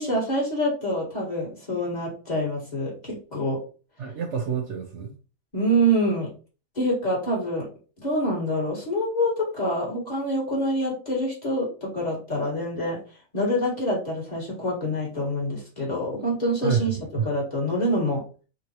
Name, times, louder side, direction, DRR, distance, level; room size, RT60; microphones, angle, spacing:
voice 1, 0.0-3.6 5.5-6.3 6.8-7.7 8.0-13.0 13.3-16.9 17.2-18.2, equal, 30° left, -5 dB, 1.9 m, -26 dB
voice 2, 4.0-5.1 16.6-17.3, right 6 dB, 65° right, 3 dB, 0.9 m, -28 dB
3.9 x 3.7 x 2.9 m, 0.36 s
omnidirectional pair, 1.5 m